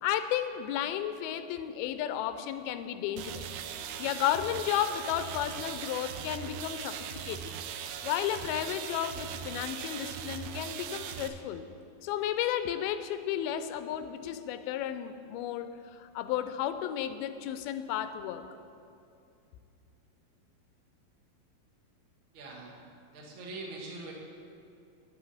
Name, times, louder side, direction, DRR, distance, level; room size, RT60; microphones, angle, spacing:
voice 1, 0.0-3.5 4.0-7.6 8.0-11.6 12.0-18.4, left 10 dB, 90° left, 10 dB, 2.4 m, -33 dB
sound 1, 3.2-11.3, right 9 dB, 80° right, 2.2 m, -39 dB
voice 2, 22.3-22.7 23.1-24.1, right 2 dB, 50° right, -3 dB, 1.6 m, -42 dB
9.2 x 8.8 x 5.6 m, 2.6 s
omnidirectional pair, 4.3 m